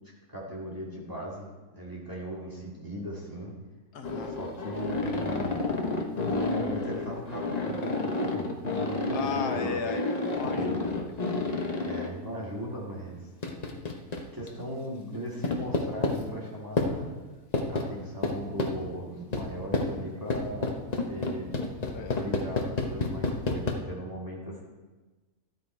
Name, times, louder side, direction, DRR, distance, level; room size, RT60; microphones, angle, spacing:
voice 1, 0.3-1.5 1.7-3.5 4.3-5.6 6.2-9.8 10.4-10.6 11.8-13.3 14.3-17.1 17.7-21.5 22.1-24.6, equal, 15° right, -4 dB, 2.3 m, -38 dB
voice 2, 3.9-4.4 9.1-11.1 21.9-22.2, left 5 dB, 80° left, 5 dB, 1.5 m, -35 dB
sound 1, 4.0-12.1 13.4-14.5 15.4-16.2 16.8-16.9 17.5-17.9 18.2-18.7 19.3-19.5 19.7-19.9 20.3-23.7, left 3 dB, 30° left, 1.0 m, -29 dB
13.0 x 9.4 x 4.5 m, 1.2 s
omnidirectional pair, 1.6 m